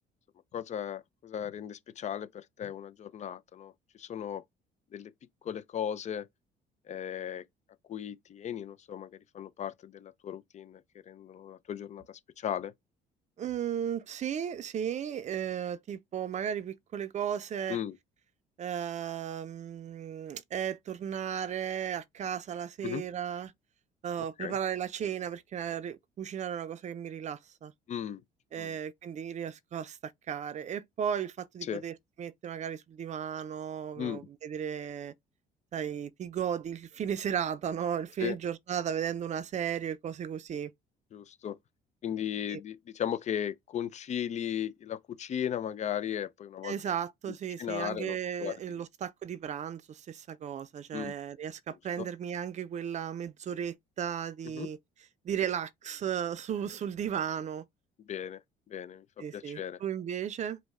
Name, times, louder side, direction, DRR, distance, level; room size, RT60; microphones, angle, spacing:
voice 1, 0.5-3.7 4.0-4.4 4.9-5.1 5.4-6.3 6.9-7.4 7.9-12.7 17.7-17.9 22.8-23.0 24.4-24.5 27.9-28.2 28.6-28.8 31.6-31.8 34.0-34.2 38.2-38.4 41.1-41.6 42.0-46.7 47.6-48.8 50.9-51.1 52.0-52.1 54.5-54.7 58.1-58.4 58.7-59.8, left 9 dB, 45° left, 0.5 m, -36 dB
voice 2, 13.4-17.8 18.6-23.5 24.0-27.7 28.5-35.1 35.7-40.7 42.5-42.6 46.6-54.8 55.2-57.6 59.2-60.6, right 9 dB, 45° right, 0.5 m, -35 dB
5.1 x 2.2 x 3.5 m
cardioid pair, 110°, 17 cm